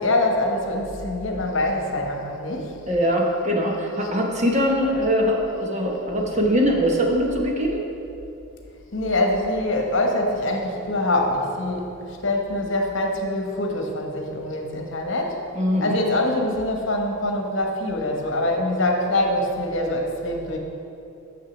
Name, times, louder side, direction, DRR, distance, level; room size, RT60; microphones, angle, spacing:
voice 1, 0.0-2.8 8.9-15.4 15.8-20.6, left 1 dB, 60° left, 2 dB, 1.0 m, -24 dB
voice 2, 2.9-7.8 15.5-16.0, equal, 35° right, 0 dB, 1.0 m, -22 dB
6.7 x 6.2 x 7.0 m, 2.8 s
head